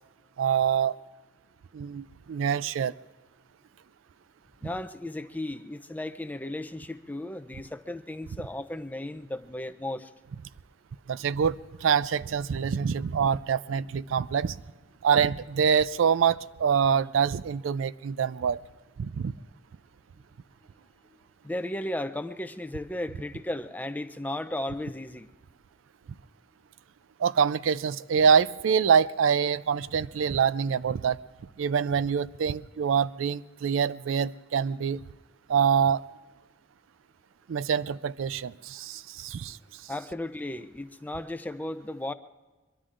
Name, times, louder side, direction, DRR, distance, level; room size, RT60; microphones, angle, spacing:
voice 1, 0.4-0.9 1.7-2.9 11.1-14.5 15.0-18.6 19.0-19.3 27.2-31.2 31.6-35.0 35.5-36.0 37.5-39.6, right 7 dB, 85° right, 17 dB, 0.4 m, -25 dB
voice 2, 4.6-10.1 21.4-25.3 39.9-42.1, left 1 dB, 10° left, 11 dB, 0.5 m, -35 dB
23.5 x 22.5 x 2.5 m, 1.2 s
head